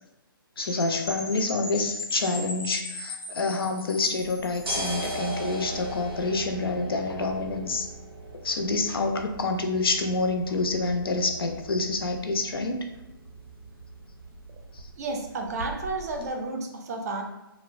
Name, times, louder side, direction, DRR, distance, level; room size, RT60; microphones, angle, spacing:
voice 1, 0.6-7.9 8.4-12.9 14.7-14.8, left 3 dB, 80° left, 5 dB, 0.4 m, -27 dB
Percussion / Wind chime, 0.6-5.3, left 2 dB, 15° left, 0.4 m, -38 dB
sound 1, 4.2-16.3, right 2 dB, 90° right, 0.6 m, -39 dB
voice 2, 15.0-17.2, right 3 dB, 45° right, 3 dB, 0.4 m, -32 dB
2.9 x 2.1 x 2.4 m, 0.96 s
figure-of-eight pair, 140°, 12 cm